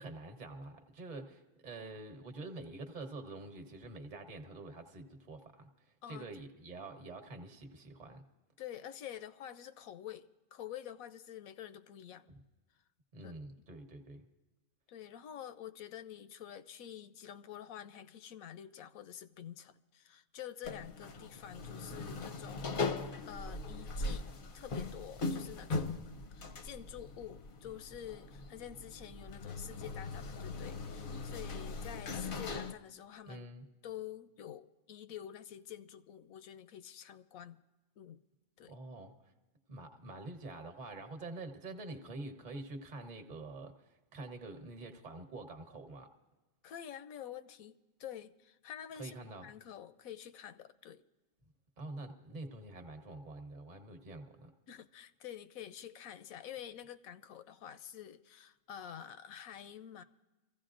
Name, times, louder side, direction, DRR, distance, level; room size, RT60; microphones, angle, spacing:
voice 1, 0.0-8.2 13.1-14.3 33.3-33.6 38.7-39.3 39.7-46.1 49.0-49.5 51.8-54.5, right 2 dB, 35° right, 1.1 m, -46 dB
voice 2, 6.0-6.5 8.6-12.3 13.2-13.4 14.9-22.9 23.3-24.3 24.5-26.0 26.3-33.5 33.8-37.6 38.0-38.2 38.6-38.7 46.6-49.2 49.4-51.0 54.7-60.0, left 10 dB, 80° left, 1.0 m, -48 dB
sound 1, 20.6-32.7, left 3 dB, 50° left, 0.7 m, -40 dB
25.0 x 15.5 x 2.5 m
omnidirectional pair, 1.5 m